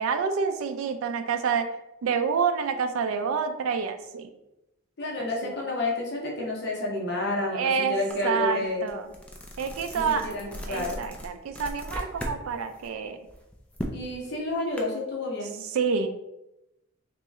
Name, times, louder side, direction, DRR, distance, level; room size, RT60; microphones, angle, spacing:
voice 1, 0.0-1.7 2.0-4.3 5.2-5.5 7.5-8.0 8.2-9.1 9.6-10.3 10.7-13.2 15.7-16.1, right 6 dB, 85° right, 7 dB, 0.3 m, -28 dB
voice 2, 5.0-8.9 9.9-11.1 13.9-15.6, left 2 dB, 55° left, -2 dB, 0.8 m, -30 dB
sound 1, 8.1-8.2 8.6-12.4 12.7-14.8, equal, 5° left, 0.3 m, -37 dB
3.0 x 2.9 x 3.5 m, 0.90 s
head